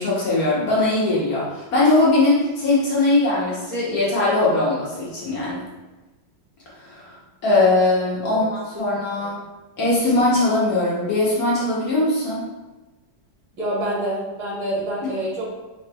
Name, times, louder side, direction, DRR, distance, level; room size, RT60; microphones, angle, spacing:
voice 1, 0.0-5.6 6.8-7.2 7.4-9.4 9.8-12.4, left 2 dB, 55° left, -6 dB, 1.2 m, -20 dB
voice 2, 13.6-15.5, right 1 dB, 75° right, -8 dB, 2.4 m, -27 dB
4.9 x 3.1 x 2.2 m, 1.1 s
omnidirectional pair, 2.1 m